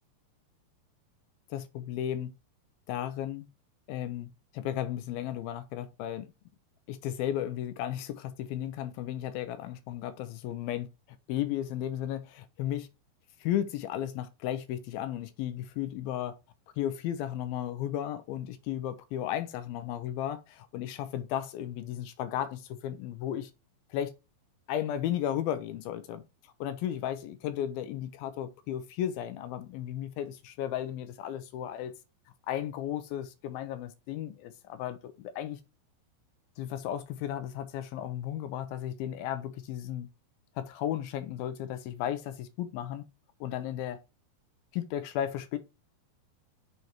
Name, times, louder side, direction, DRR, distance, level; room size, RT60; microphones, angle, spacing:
voice 1, 1.5-2.3 2.9-3.5 3.9-6.3 6.9-10.9 11.3-12.9 13.4-16.3 16.8-23.5 23.9-24.1 24.7-26.2 26.6-31.9 32.5-35.6 36.6-40.1 40.6-43.0 43.4-44.0 44.7-45.6, left 11 dB, 80° left, 2.4 m, -34 dB
6.5 x 4.1 x 4.4 m
omnidirectional pair, 4.5 m